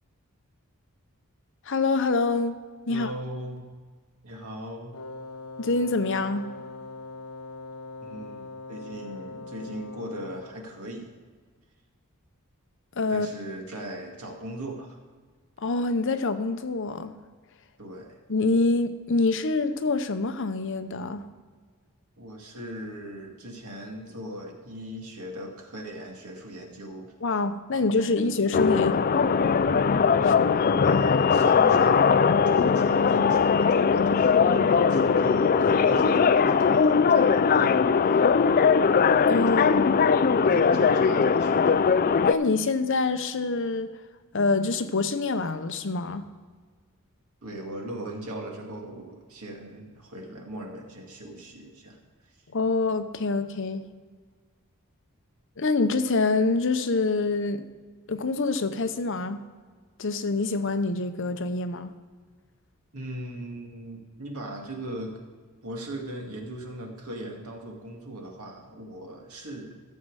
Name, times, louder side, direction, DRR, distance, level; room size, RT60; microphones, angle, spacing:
voice 1, 1.7-2.6 2.9-3.1 5.6-6.5 13.0-13.3 15.6-17.1 18.3-21.2 27.2-29.0 30.2-30.5 39.1-40.0 42.2-43.9 44.3-46.3 52.5-53.9 55.6-57.6 58.1-59.4 60.0-61.9, left 3 dB, 55° left, 9 dB, 0.8 m, -26 dB
voice 2, 2.9-3.7 4.2-5.0 8.0-11.1 13.1-15.0 17.8-18.2 22.2-27.1 27.7-28.3 30.2-38.2 39.5-39.7 40.4-41.8 47.4-52.0 62.9-65.1 65.6-69.8, right 1 dB, 80° right, 1 dB, 2.1 m, -39 dB
Wind instrument woodwind instrument, 4.9-10.6, left 3 dB, 80° left, 1.1 m, -41 dB
sound 1, 28.5-42.3, left 6 dB, 40° left, 0.4 m, -20 dB
14.0 x 7.5 x 4.8 m, 1.5 s
head